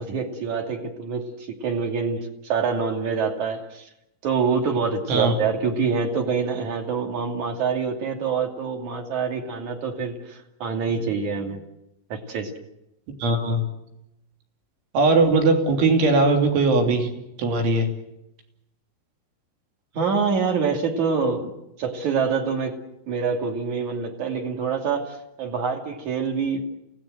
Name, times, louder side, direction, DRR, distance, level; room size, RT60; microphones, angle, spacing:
voice 1, 0.0-3.9 4.2-11.6 12.1-12.5 19.9-21.5 21.8-22.8 23.1-26.6, right 5 dB, 45° right, 4 dB, 3.4 m, -26 dB
voice 2, 13.2-13.6 14.9-17.1 17.4-17.9, right 3 dB, 75° right, 4 dB, 5.6 m, -19 dB
29.0 x 18.0 x 7.9 m, 0.87 s
omnidirectional pair, 5.5 m